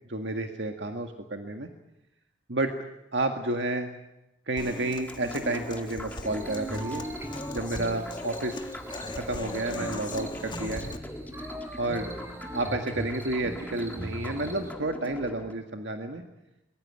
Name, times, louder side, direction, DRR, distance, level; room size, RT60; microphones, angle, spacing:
voice 1, 0.1-1.7 2.5-2.7 3.1-3.9 4.5-7.0 7.5-8.6 9.1-11.0 11.8-12.1 12.5-16.2, right 2 dB, 75° right, 4 dB, 2.0 m, -31 dB
Human voice / Acoustic guitar, 4.6-11.0, left 2 dB, 25° left, 1.5 m, -39 dB
sound 1, 5.0-15.5, left 1 dB, 10° left, 1.8 m, -43 dB
sound 2, 6.2-14.7, right 1 dB, 15° right, 3.4 m, -40 dB
23.5 x 22.0 x 8.8 m, 0.91 s
head